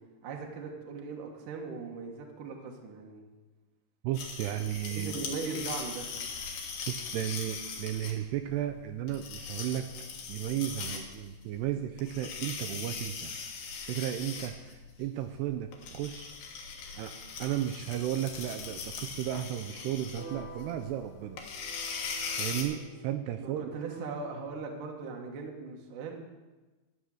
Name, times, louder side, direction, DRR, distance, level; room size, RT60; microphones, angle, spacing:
voice 1, 0.2-3.2 5.0-6.1 23.4-26.2, right 4 dB, 65° right, 0 dB, 2.3 m, -39 dB
voice 2, 4.0-5.2 6.9-9.9 10.3-13.3 13.8-16.4 17.0-17.1 17.4-21.4 22.4-23.7, right 12 dB, 85° right, 6 dB, 2.5 m, -34 dB
sound 1, 4.1-22.6, left 5 dB, 65° left, 3.1 m, -40 dB
sound 2, 20.1-24.5, right 2 dB, 40° left, 2.6 m, -49 dB
13.0 x 8.8 x 6.5 m, 1.2 s
omnidirectional pair, 5.3 m